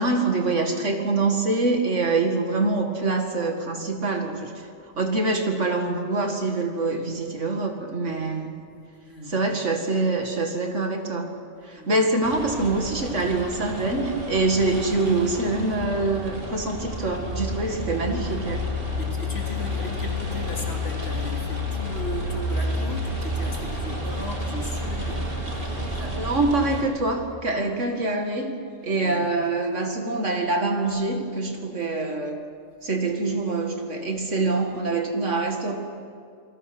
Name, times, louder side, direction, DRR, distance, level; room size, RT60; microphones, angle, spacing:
voice 1, 0.0-4.7 5.0-8.5 9.3-11.3 11.6-18.7 26.0-32.4 32.8-35.8, right 3 dB, 65° right, 3 dB, 2.4 m, -25 dB
voice 2, 9.0-9.4 11.7-11.9 19.0-26.4 29.0-29.3, equal, 50° left, 0 dB, 3.4 m, -37 dB
sound 1, 12.2-26.8, left 1 dB, 45° right, 3.1 m, -30 dB
28.5 x 20.5 x 6.1 m, 2.3 s
omnidirectional pair, 1.3 m